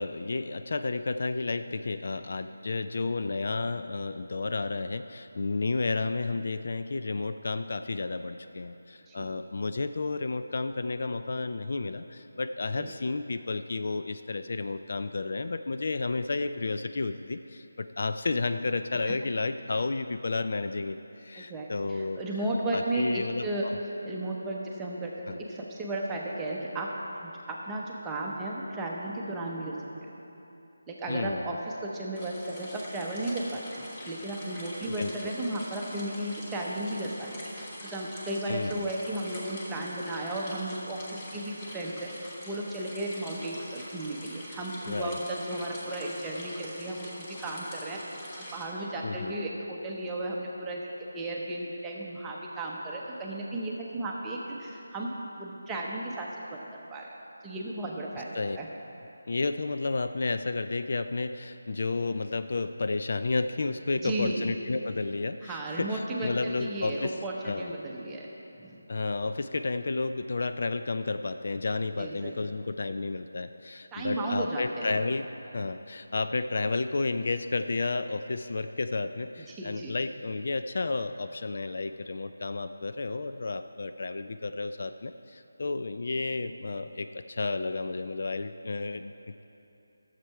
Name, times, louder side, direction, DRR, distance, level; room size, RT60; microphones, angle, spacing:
voice 1, 0.0-22.2 22.7-23.8 25.3-25.4 31.1-31.6 35.0-35.3 38.5-38.9 44.9-45.2 49.0-49.3 58.3-58.6 59.3-67.2 67.4-67.7 68.9-75.3 75.5-89.4, left 3 dB, 50° left, 9 dB, 0.3 m, -32 dB
voice 2, 21.4-23.7 24.0-26.9 27.2-29.8 30.9-48.0 48.4-55.1 55.4-57.1 57.4-58.7 63.9-64.4 65.4-68.3 68.6-68.8 72.0-72.3 73.9-74.9 79.5-79.9, right 1 dB, 10° right, -3 dB, 0.8 m, -34 dB
sound 1, 32.1-48.6, equal, 20° left, 1.4 m, -44 dB
12.0 x 7.4 x 4.7 m, 3.0 s
figure-of-eight pair, 170°, 0 cm